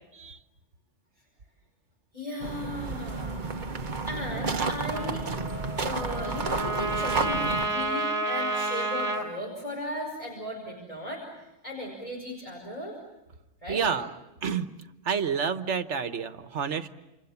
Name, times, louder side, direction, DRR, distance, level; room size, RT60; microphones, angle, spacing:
voice 1, 2.1-5.3 5.8-12.9 13.6-13.9, left 1 dB, 30° left, -1 dB, 5.3 m, -37 dB
sound 1, 2.4-7.7, right 4 dB, 40° right, 1.3 m, -31 dB
Trumpet, 4.9-9.3, right 2 dB, 15° right, 4.4 m, -30 dB
voice 2, 13.7-14.1 14.4-14.7 15.0-16.9, right 6 dB, 75° right, 10 dB, 1.5 m, -29 dB
29.0 x 28.5 x 7.2 m, 0.99 s
omnidirectional pair, 1.2 m